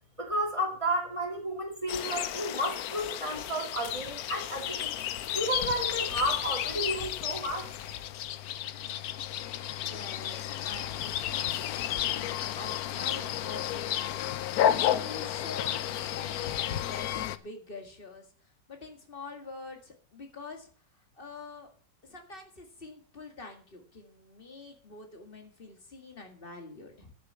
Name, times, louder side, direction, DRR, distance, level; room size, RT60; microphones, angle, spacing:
voice 1, 0.2-5.0 5.3-7.7, right 1 dB, 15° right, 1 dB, 2.4 m, -32 dB
sound 1, 1.9-17.4, left 11 dB, 65° left, 1.0 m, -32 dB
voice 2, 9.7-14.0 14.5-18.3 18.7-20.7 21.2-21.7 22.0-27.1, left 3 dB, 30° left, 4 dB, 2.1 m, -46 dB
10.0 x 6.9 x 6.9 m, 0.43 s
omnidirectional pair, 1.9 m